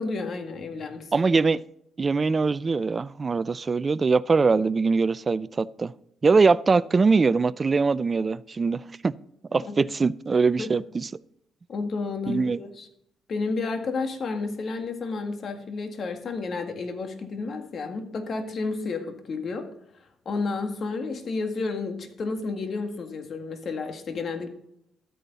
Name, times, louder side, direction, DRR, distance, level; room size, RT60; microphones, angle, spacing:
voice 1, 0.0-1.1 9.5-9.7 10.6-10.7 11.7-12.9 13.3-19.7 20.3-24.5, left 4 dB, 50° left, 1.9 m, -31 dB
voice 2, 1.1-1.6 2.0-5.9 6.2-9.1 9.5-11.1 12.3-12.6, right 4 dB, 30° right, 0.4 m, -22 dB
12.5 x 9.3 x 4.1 m
cardioid pair, 90°, 0 cm